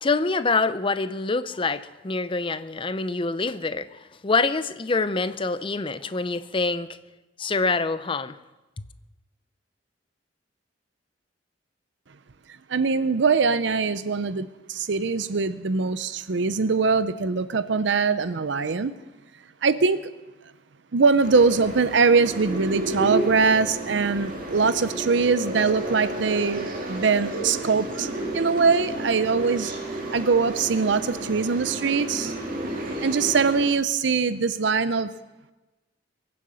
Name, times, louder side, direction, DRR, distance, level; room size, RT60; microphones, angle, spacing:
voice 1, 0.0-6.9 7.4-8.4, left 3 dB, 30° left, 0.6 m, -26 dB
voice 2, 12.7-18.9 19.6-20.0 20.9-29.7 30.1-32.3 32.9-35.1, right 4 dB, 70° right, 0.6 m, -22 dB
sound 1, 21.2-33.7, right 2 dB, 45° right, 2.6 m, -32 dB
22.5 x 7.7 x 7.7 m
head